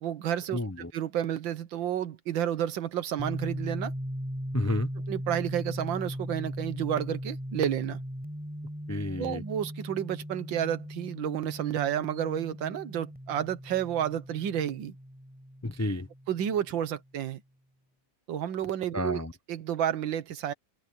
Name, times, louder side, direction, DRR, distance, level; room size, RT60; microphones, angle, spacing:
voice 1, 0.0-0.6 0.9-3.9 5.0-8.0 9.2-15.0 16.3-17.4 18.3-19.2 19.5-20.5, right 10 dB, 90° right, 1.8 m, -31 dB
voice 2, 0.5-0.9 4.5-4.9 8.9-9.4 15.6-16.1 18.9-19.3, left 1 dB, 25° left, 0.3 m, -30 dB
sound 1, 3.2-16.8, equal, 5° right, 6.9 m, -38 dB
open air
omnidirectional pair, 2.0 m